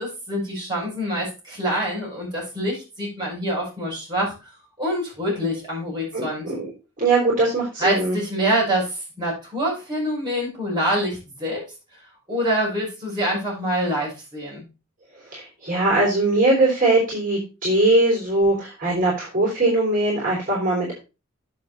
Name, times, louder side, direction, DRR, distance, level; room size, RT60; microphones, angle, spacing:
voice 1, 0.0-4.5 4.8-6.5 7.8-11.6 12.3-14.6, right 1 dB, 20° right, -5 dB, 6.2 m, -26 dB
voice 2, 6.1-6.7 7.0-8.2 15.3-21.0, right 2 dB, 40° right, -4 dB, 4.1 m, -21 dB
8.3 x 7.1 x 4.3 m, 0.29 s
head